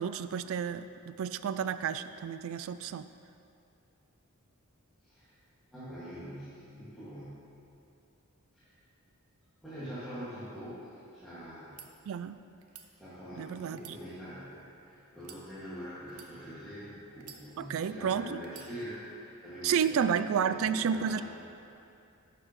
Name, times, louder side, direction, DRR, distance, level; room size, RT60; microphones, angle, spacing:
voice 1, 0.0-3.1 12.1-12.4 13.4-14.0 17.6-18.4 19.6-21.2, right 7 dB, 65° right, 13 dB, 0.3 m, -31 dB
voice 2, 5.7-7.5 8.5-8.7 9.6-11.9 13.0-21.2, equal, ahead, -16 dB, 2.1 m, -44 dB
sound 1, 11.7-11.9 12.6-12.9 13.7-14.6 15.2-15.4 16.1-16.3 17.2-17.8 18.4-19.1 19.7-20.0, right 8 dB, 80° right, 0.7 m, -51 dB
11.5 x 6.9 x 3.2 m, 2.6 s
head